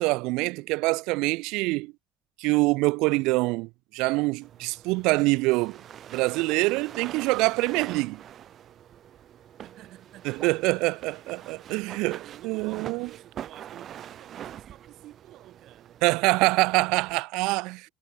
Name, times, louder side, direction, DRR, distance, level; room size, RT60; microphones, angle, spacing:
voice 1, 0.0-1.9 2.4-5.8 6.1-8.2 10.2-12.2 12.4-13.1 16.0-17.9, right 23 dB, 75° right, 0.7 m, -25 dB
sound 1, 4.4-17.2, right 10 dB, 40° right, 2.5 m, -44 dB
voice 2, 9.6-10.5 10.9-11.3 11.6-16.0, right 15 dB, 55° right, 5.5 m, -51 dB
cardioid pair, 140°, 0 cm